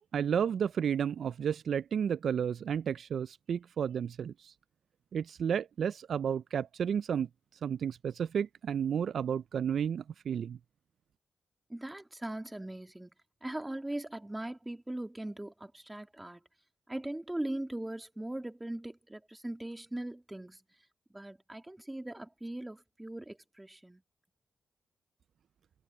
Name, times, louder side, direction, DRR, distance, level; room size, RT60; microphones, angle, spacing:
voice 1, 0.1-4.5 5.1-7.3 7.6-10.6, right 8 dB, 70° right, 0.4 m, -32 dB
voice 2, 11.7-13.1 13.4-16.4 16.9-20.6 21.1-24.0, right 1 dB, 15° right, 2.6 m, -40 dB
supercardioid pair, 45°, 0 cm